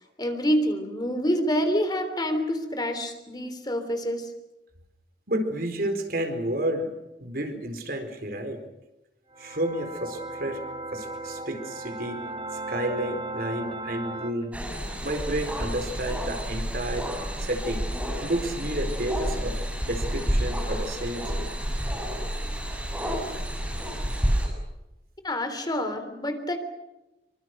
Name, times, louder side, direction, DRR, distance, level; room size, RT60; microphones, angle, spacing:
voice 1, 0.2-4.3 25.2-26.6, equal, 25° left, 7 dB, 3.4 m, -27 dB
voice 2, 5.3-6.9 7.2-8.6 9.4-10.6 10.9-12.2 12.7-14.6 15.0-17.1 17.4-19.6 19.8-21.5, right 1 dB, 55° right, 7 dB, 4.4 m, -31 dB
sound 1, 9.3-14.3, right 2 dB, 30° right, 2.9 m, -36 dB
sound 2, 14.5-24.5, equal, 10° right, 7.7 m, -30 dB
26.5 x 25.0 x 6.5 m, 0.96 s
head